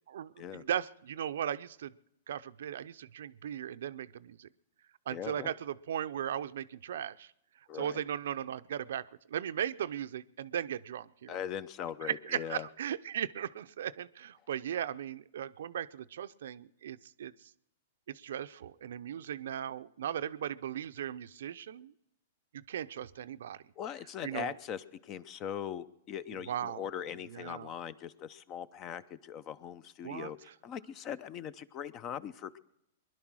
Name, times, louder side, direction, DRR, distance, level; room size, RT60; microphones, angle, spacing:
voice 1, 0.1-1.9 2.3-4.5 5.1-7.3 7.7-9.0 9.3-11.4 12.0-17.3 18.1-21.9 22.5-23.6 24.2-24.5 26.3-26.9 27.3-27.7 30.0-30.3, right 10 dB, 75° right, 13 dB, 0.6 m, -37 dB
voice 2, 5.1-5.5 7.7-8.0 11.3-12.7 23.8-30.4 30.6-32.6, left 9 dB, 35° left, 18 dB, 0.7 m, -40 dB
21.0 x 11.0 x 6.2 m, 0.80 s
hypercardioid pair, 130°, 0 cm